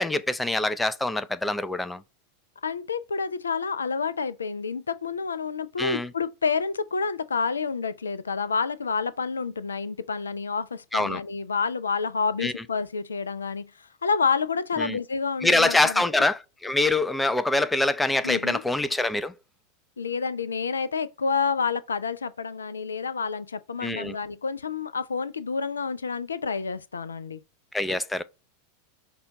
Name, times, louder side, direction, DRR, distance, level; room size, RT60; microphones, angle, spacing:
voice 1, 0.0-2.0 5.8-6.1 10.9-11.2 12.4-12.6 14.8-15.0 15.4-19.3 23.8-24.2 27.7-28.2, left 2 dB, 10° left, 0.4 m, -25 dB
voice 2, 2.6-13.7 14.0-16.0 18.2-18.6 20.0-27.4, left 5 dB, 85° left, 0.3 m, -29 dB
5.5 x 2.3 x 3.9 m
hypercardioid pair, 90°, 0 cm